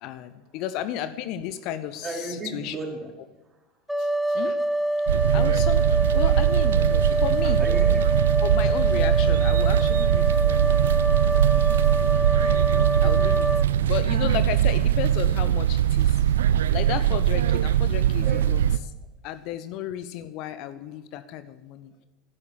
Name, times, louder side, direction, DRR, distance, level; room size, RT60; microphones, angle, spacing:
voice 1, 0.0-2.8 4.0-4.6 5.3-5.9 6.1-6.8 7.2-7.6 8.4-10.7 13.0-13.5 13.8-16.3 16.7-18.9 19.2-22.0, left 11 dB, 55° left, 13 dB, 0.8 m, -33 dB
voice 2, 2.0-3.1 7.6-8.1 13.4-13.9 18.2-18.5, right 2 dB, 25° right, 0 dB, 4.2 m, -35 dB
sound 1, 3.9-13.7, right 1 dB, ahead, 1.0 m, -26 dB
sound 2, 5.1-18.8, right 11 dB, 75° right, 0.4 m, -21 dB
11.5 x 11.0 x 7.4 m, 1.0 s
hypercardioid pair, 85°, 0 cm